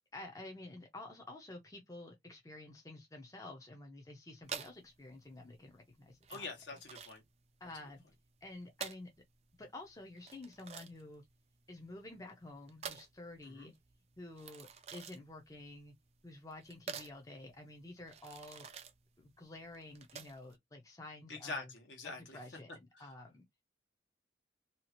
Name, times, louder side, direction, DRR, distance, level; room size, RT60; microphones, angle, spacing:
voice 1, 0.1-6.5 7.6-8.0 8.4-9.1 9.6-11.3 11.7-13.7 14.2-15.9 16.2-18.7 19.2-21.7 22.0-23.4, left 2 dB, 20° left, 0.5 m, -50 dB
sound 1, 4.4-20.6, right 7 dB, 35° right, 0.3 m, -49 dB
voice 2, 6.3-7.2 13.4-13.7 21.3-22.4 22.9-23.1, left 3 dB, 70° left, 1.1 m, -45 dB
2.8 x 2.4 x 2.8 m
head